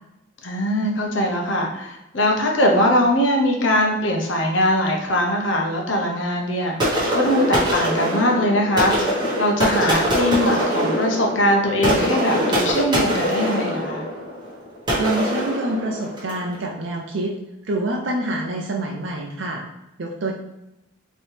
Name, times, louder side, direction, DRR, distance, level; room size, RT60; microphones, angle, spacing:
voice 1, 0.4-14.0, left 1 dB, 65° left, 1 dB, 0.9 m, -21 dB
sound 1, 6.8-16.4, equal, 20° right, 1.3 m, -23 dB
voice 2, 15.0-17.3 17.7-19.6 20.0-20.3, right 2 dB, 65° right, -1 dB, 0.5 m, -26 dB
4.4 x 3.0 x 3.3 m, 0.92 s
head